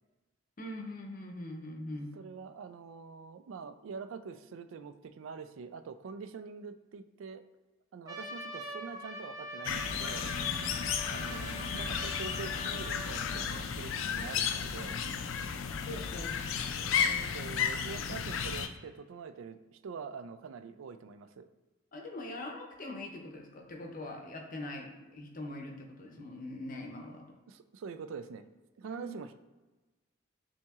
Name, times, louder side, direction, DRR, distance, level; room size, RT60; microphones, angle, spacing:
voice 1, 0.6-2.2 10.5-10.7 15.9-16.3 16.7-17.2 21.9-27.2 28.8-29.1, left 1 dB, 45° left, 2 dB, 0.7 m, -43 dB
voice 2, 2.1-7.4 7.9-10.3 11.1-15.0 17.0-21.5 27.5-28.5 28.8-29.3, right 5 dB, 80° right, 11 dB, 0.3 m, -45 dB
Trumpet, 8.1-13.4, equal, 20° right, 0.5 m, -43 dB
sound 1, 9.6-18.7, left 7 dB, 80° left, 0.4 m, -33 dB
5.5 x 2.8 x 2.4 m, 1.2 s
head